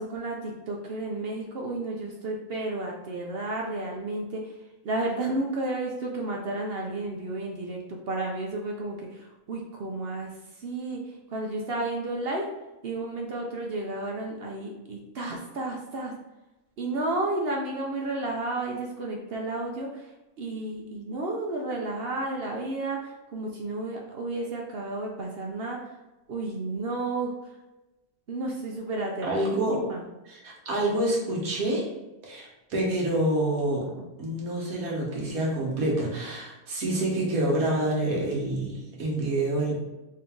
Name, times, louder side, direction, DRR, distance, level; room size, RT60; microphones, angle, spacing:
voice 1, 0.0-4.5 4.8-10.3 10.6-12.5 12.8-16.1 16.8-20.1 20.4-25.9 26.3-27.3 28.3-30.0 33.9-34.0, right 2 dB, 60° right, 0 dB, 0.7 m, -32 dB
voice 2, 29.2-29.8 30.2-31.9 32.2-33.9 34.2-39.7, right 1 dB, 85° right, -3 dB, 1.6 m, -27 dB
4.0 x 2.8 x 3.5 m, 1.0 s
omnidirectional pair, 1.4 m